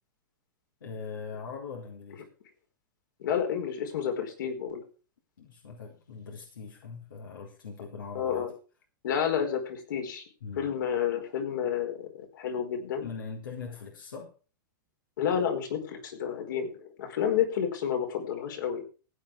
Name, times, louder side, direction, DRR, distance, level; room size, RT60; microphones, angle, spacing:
voice 1, 0.8-2.2 5.4-8.5 9.1-9.4 10.4-10.7 13.0-14.3, left 5 dB, 90° left, 0 dB, 3.7 m, -41 dB
voice 2, 3.2-4.8 8.1-8.5 9.0-10.2 10.6-13.1 15.2-18.8, left 8 dB, 70° left, 4 dB, 4.7 m, -30 dB
16.0 x 9.5 x 4.9 m, 0.36 s
hypercardioid pair, 125°, 11 cm